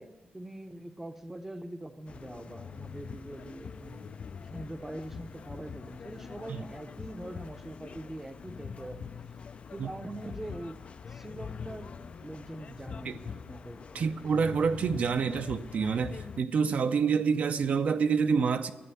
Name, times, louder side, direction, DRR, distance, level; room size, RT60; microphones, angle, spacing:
voice 1, 0.0-9.2 9.7-11.9 12.2-14.2, right 1 dB, 10° right, 0.6 m, -43 dB
sound 1, 2.1-16.4, left 6 dB, 40° left, 0.3 m, -44 dB
voice 2, 13.9-18.7, right 6 dB, 55° right, 0.5 m, -27 dB
11.0 x 8.5 x 9.7 m
wide cardioid pair, 165°, 3 cm